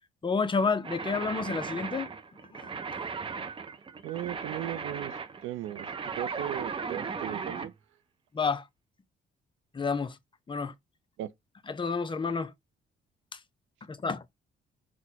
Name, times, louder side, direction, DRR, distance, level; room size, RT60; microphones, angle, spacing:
voice 1, 0.2-2.1 2.5-2.7 8.3-8.6 9.7-10.2 10.5-10.7 11.7-12.5 13.9-14.2, left 4 dB, 25° left, 0.5 m, -29 dB
sound 1, 0.8-7.7, right 5 dB, 25° right, 0.4 m, -37 dB
voice 2, 4.0-5.9 6.2-7.7 11.2-11.3, right 13 dB, 85° right, 0.5 m, -37 dB
4.1 x 2.1 x 2.7 m
cardioid pair, 90°, 20 cm